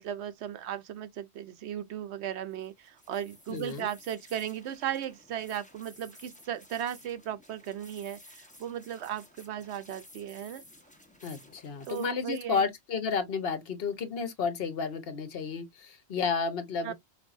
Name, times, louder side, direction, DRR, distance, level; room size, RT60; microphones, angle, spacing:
voice 1, 0.0-10.6 11.9-12.6 16.8-16.9, right 10 dB, 80° right, 0.9 m, -36 dB
sound 1, 2.5-12.1, left 1 dB, 5° left, 1.0 m, -55 dB
voice 2, 3.5-3.9 11.2-16.9, left 5 dB, 60° left, 1.1 m, -32 dB
5.3 x 2.6 x 2.5 m
omnidirectional pair, 1.1 m